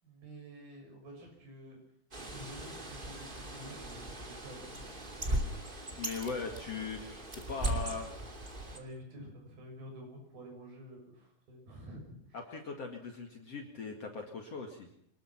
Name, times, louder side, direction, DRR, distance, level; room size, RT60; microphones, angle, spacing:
voice 1, 0.0-1.8 2.2-5.0 8.8-12.4, equal, 85° right, 2 dB, 8.5 m, -50 dB
Bird, 2.1-8.8, right 1 dB, 15° right, 2.4 m, -38 dB
voice 2, 6.0-8.1 12.3-14.9, left 4 dB, 50° left, 3 dB, 2.8 m, -40 dB
25.0 x 20.5 x 5.9 m, 0.68 s
omnidirectional pair, 4.1 m